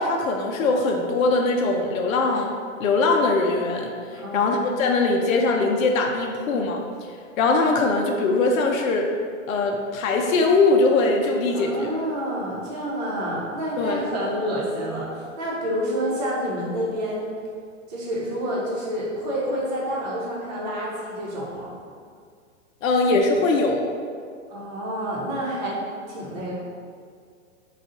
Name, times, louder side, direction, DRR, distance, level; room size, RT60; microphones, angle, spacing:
voice 1, 0.0-6.8 7.4-9.1 9.5-11.9 13.8-14.0 22.8-23.9, left 3 dB, 85° left, 1 dB, 0.6 m, -21 dB
voice 2, 4.1-4.5 11.5-17.3 17.9-21.8 24.5-25.8 26.1-26.5, equal, 30° right, -5 dB, 0.9 m, -28 dB
4.1 x 2.4 x 3.7 m, 2.1 s
hypercardioid pair, 165°, 40 cm